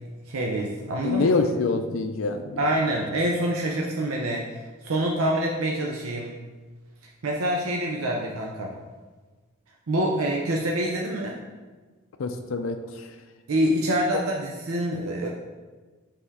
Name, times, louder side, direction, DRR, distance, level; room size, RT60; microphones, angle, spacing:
voice 1, 0.3-1.3 2.6-4.5 4.8-6.3 7.2-8.7 9.9-11.4 13.5-15.3, right 1 dB, 85° right, -1 dB, 0.6 m, -26 dB
voice 2, 1.0-2.6 12.2-13.1, left 4 dB, 65° left, 6 dB, 0.4 m, -25 dB
5.5 x 3.6 x 4.8 m, 1.3 s
head